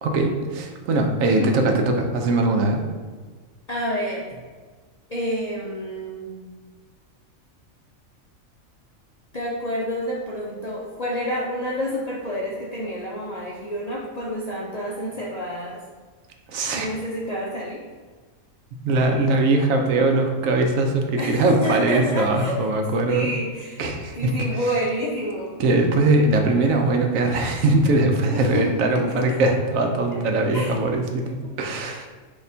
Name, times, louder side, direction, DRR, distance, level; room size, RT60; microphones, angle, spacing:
voice 1, 0.0-2.8 16.5-16.9 18.8-23.3 23.8-24.3 25.6-32.1, right 2 dB, 75° right, 3 dB, 1.0 m, -21 dB
voice 2, 1.2-1.6 3.7-4.3 5.1-6.4 9.3-15.8 16.7-17.8 21.2-22.6 23.1-23.8 24.1-25.6 28.3-29.4 30.1-30.2 30.5-30.8 31.4-31.5, equal, 55° left, -5 dB, 0.4 m, -29 dB
6.1 x 2.9 x 2.7 m, 1.4 s
omnidirectional pair, 1.4 m